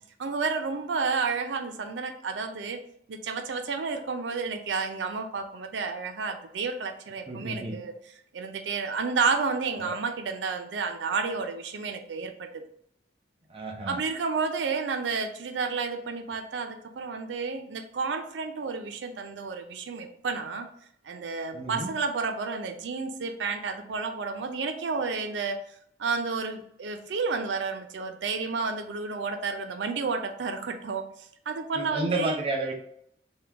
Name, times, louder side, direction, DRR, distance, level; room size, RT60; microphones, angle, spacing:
voice 1, 0.2-2.8 3.1-7.9 8.3-12.6 13.9-20.7 21.0-25.6 26.0-31.0 31.5-32.4, right 4 dB, 90° right, 6 dB, 0.5 m, -31 dB
voice 2, 7.3-7.8 9.8-10.0 13.5-14.0 21.5-21.9 31.7-32.7, right 2 dB, 30° right, 1 dB, 0.5 m, -31 dB
3.7 x 2.2 x 4.4 m, 0.69 s
head